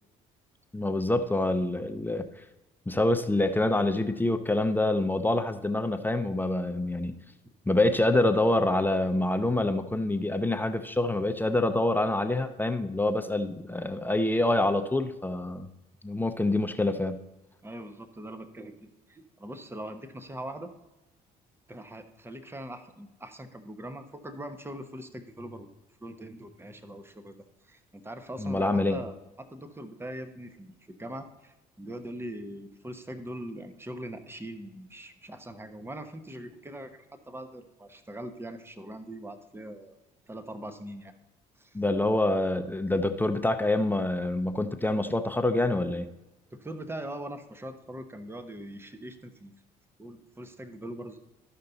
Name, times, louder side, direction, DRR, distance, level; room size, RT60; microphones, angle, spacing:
voice 1, 0.7-2.3 2.9-7.1 7.7-15.7 16.0-17.2 28.4-29.0 41.7-46.1, left 2 dB, 10° left, 8 dB, 0.8 m, -26 dB
voice 2, 17.6-20.7 21.7-25.7 26.0-40.0 40.3-41.1 41.6-41.8 46.5-49.5 50.0-51.2, right 1 dB, 10° right, 8 dB, 1.1 m, -42 dB
13.0 x 5.5 x 4.0 m, 1.0 s
hypercardioid pair, 55°, 20 cm